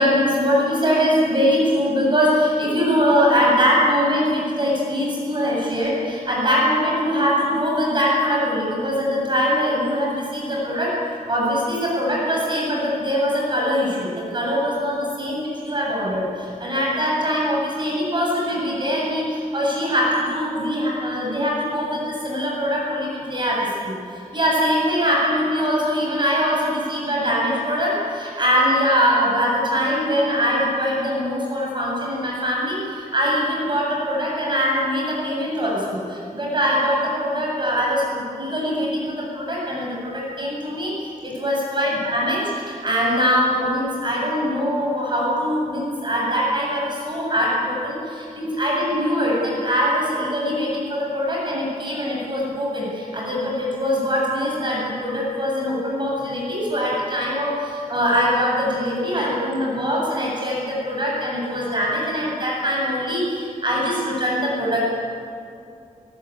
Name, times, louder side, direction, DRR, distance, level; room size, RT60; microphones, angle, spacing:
voice 1, 0.0-10.9 11.3-64.8, equal, 35° right, -4 dB, 7.9 m, -22 dB
22.0 x 19.0 x 9.5 m, 2.5 s
wide cardioid pair, 125°, 14 cm